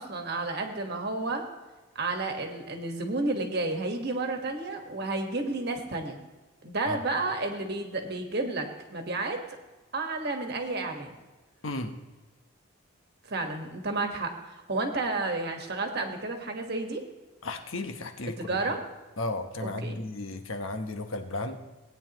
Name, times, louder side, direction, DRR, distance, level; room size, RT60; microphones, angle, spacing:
voice 1, 0.0-1.4 1.9-6.2 6.6-9.4 9.9-11.2 13.3-17.0 18.4-18.8 19.6-20.0, right 2 dB, 50° right, 3 dB, 1.4 m, -31 dB
voice 2, 11.6-12.0 17.4-18.7 19.2-21.6, left 2 dB, 65° left, 6 dB, 1.1 m, -34 dB
18.0 x 9.3 x 3.0 m, 1.2 s
head